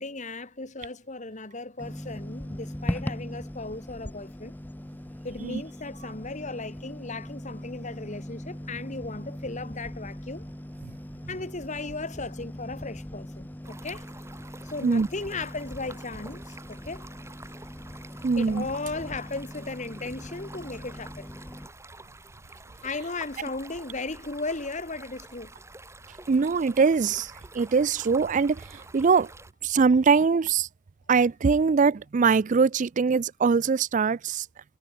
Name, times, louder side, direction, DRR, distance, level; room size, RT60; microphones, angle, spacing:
voice 1, 0.0-4.5 5.2-10.5 11.3-14.1 14.6-17.1 18.4-21.3 22.8-25.5, left 3 dB, 35° left, 2.0 m, -36 dB
sound 1, 1.8-21.7, left 1 dB, 10° left, 0.7 m, -40 dB
Stream, 13.6-29.5, right 2 dB, 15° right, 3.4 m, -48 dB
voice 2, 18.2-18.7 26.3-29.3 29.6-30.7 31.1-34.5, right 5 dB, 40° right, 0.4 m, -22 dB
head